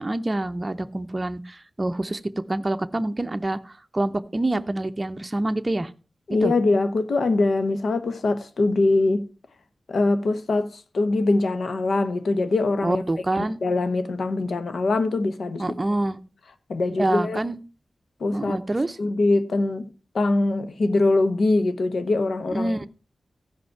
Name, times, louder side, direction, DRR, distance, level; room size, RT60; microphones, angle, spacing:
voice 1, 0.0-2.2 2.5-5.9 6.4-6.5 12.8-13.6 15.6-16.2 17.0-17.6 18.3-19.0 22.5-22.9, right 2 dB, 25° right, 0.6 m, -26 dB
voice 2, 6.3-9.3 9.9-13.0 13.3-15.8 16.7-17.4 18.2-18.6 19.0-19.9 20.1-22.9, left 2 dB, 80° left, 1.0 m, -23 dB
15.0 x 5.3 x 4.5 m
wide cardioid pair, 95°, 0 cm